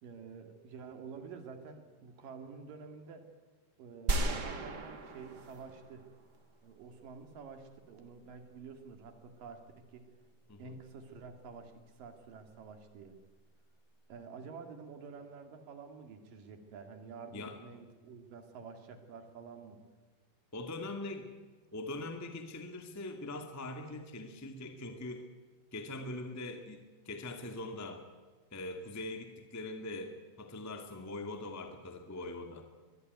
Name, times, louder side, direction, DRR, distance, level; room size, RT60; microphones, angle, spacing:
voice 1, 0.0-3.2 3.8-6.0 6.6-10.0 10.6-13.1 14.1-19.8, right 5 dB, 60° right, 6 dB, 3.6 m, -49 dB
sound 1, 4.1-6.4, right 2 dB, 40° right, 1.5 m, -35 dB
voice 2, 20.5-21.3 21.7-25.2 25.7-28.0 28.5-32.7, left 2 dB, 20° left, 5 dB, 0.4 m, -42 dB
22.5 x 20.5 x 9.4 m, 1.4 s
omnidirectional pair, 4.6 m